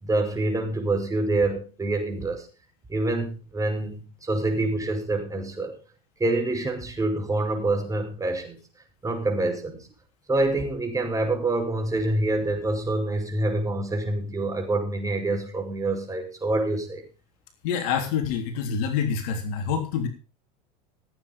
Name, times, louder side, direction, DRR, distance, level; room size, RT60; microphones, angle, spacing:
voice 1, 0.0-2.5 2.9-5.7 6.2-8.6 9.0-9.9 10.3-17.0, right 2 dB, 15° right, 3 dB, 5.6 m, -26 dB
voice 2, 17.6-20.1, left 7 dB, 65° left, 6 dB, 3.3 m, -26 dB
16.0 x 8.8 x 5.4 m, 0.34 s
hypercardioid pair, 100°, 21 cm